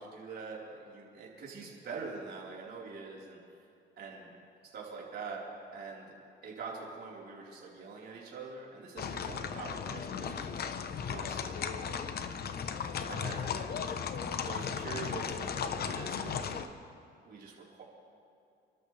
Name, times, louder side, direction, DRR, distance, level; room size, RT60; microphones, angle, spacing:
voice 1, 0.0-3.4 4.0-4.3 4.7-5.4 5.7-6.1 6.4-10.4 11.0-12.0 13.1-13.5 14.4-16.5 17.2-17.8, right 4 dB, 60° right, -4 dB, 4.4 m, -44 dB
sound 1, 9.0-16.7, left 7 dB, 55° left, 0.9 m, -36 dB
29.5 x 13.0 x 3.4 m, 2.6 s
cardioid pair, 120°, 19 cm